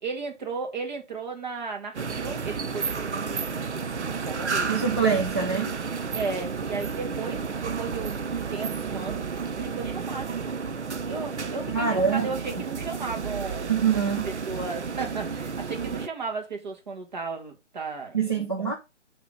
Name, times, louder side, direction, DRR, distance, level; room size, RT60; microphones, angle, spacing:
voice 1, 0.0-4.9 5.4-5.5 6.1-10.4 11.1-13.8 14.2-18.7, right 4 dB, 35° right, 1.6 m, -35 dB
sound 1, 1.9-16.1, right 5 dB, 65° right, 0.7 m, -32 dB
voice 2, 4.7-5.7 11.7-12.3 13.7-14.3 18.1-18.7, right 6 dB, 20° right, 0.5 m, -24 dB
6.7 x 3.1 x 4.8 m
figure-of-eight pair, 145°, 36 cm